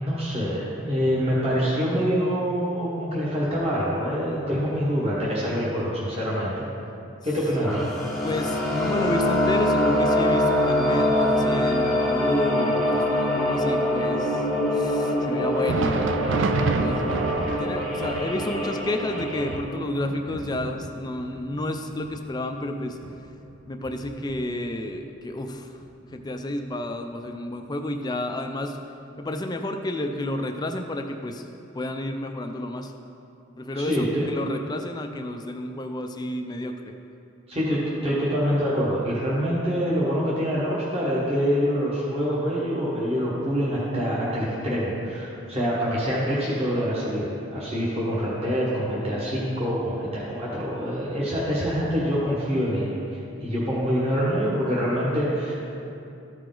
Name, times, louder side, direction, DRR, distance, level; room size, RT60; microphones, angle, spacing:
voice 1, 0.0-6.6 7.2-7.9 33.7-34.3 37.5-53.0 53.4-55.5, equal, 30° right, -7 dB, 1.3 m, -25 dB
sound 1, 7.6-19.6, left 1 dB, ahead, 1.0 m, -24 dB
voice 2, 8.2-17.3 17.6-23.0 23.7-25.8 26.1-28.8 29.2-31.5 31.7-32.9 33.6-36.9, left 1 dB, 20° left, 5 dB, 0.3 m, -31 dB
Thunder, 15.4-24.9 25.2-25.4 26.1-26.3 27.3-27.4, right 4 dB, 60° right, 0.4 m, -31 dB
13.5 x 4.8 x 3.8 m, 2.7 s
head